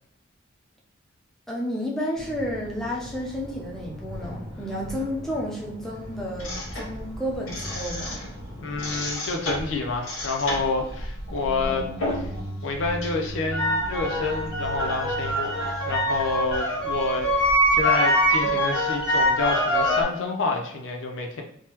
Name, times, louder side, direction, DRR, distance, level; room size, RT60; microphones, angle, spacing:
voice 1, 1.5-8.2, equal, ahead, -4 dB, 0.5 m, -31 dB
sound 1, 2.2-9.1, left 1 dB, 25° right, 1.2 m, -40 dB
sound 2, 6.4-8.4 8.7-12.4 12.7-20.0, equal, 90° left, 1.1 m, -25 dB
voice 2, 8.6-11.9 12.1-12.3 12.6-21.4, left 3 dB, 65° left, 2 dB, 0.6 m, -28 dB
sound 3, 11.3-17.3, right 1 dB, 85° right, 1.3 m, -38 dB
3.4 x 2.2 x 3.0 m, 0.69 s
head